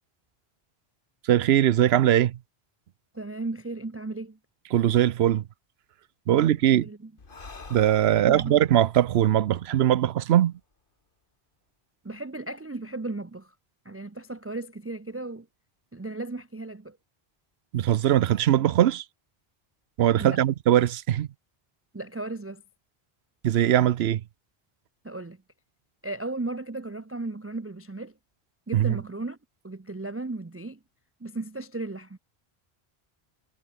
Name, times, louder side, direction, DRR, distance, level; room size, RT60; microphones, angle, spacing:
voice 1, 1.3-2.4 4.7-5.4 6.3-6.9 7.7-10.5 17.7-19.0 20.0-21.3 23.4-24.2 28.7-29.0, right 11 dB, 80° right, 0.9 m, -21 dB
voice 2, 3.1-4.4 6.3-7.1 8.2-8.6 12.0-13.5 13.8-15.5 15.9-17.0 20.2-20.4 21.9-22.6 25.0-25.4 26.0-28.1 28.7-29.4 29.6-30.8 31.2-32.2, right 2 dB, 15° right, 0.5 m, -35 dB
Breathing, 7.2-10.7, left 4 dB, 55° left, 2.1 m, -48 dB
omnidirectional pair, 1.0 m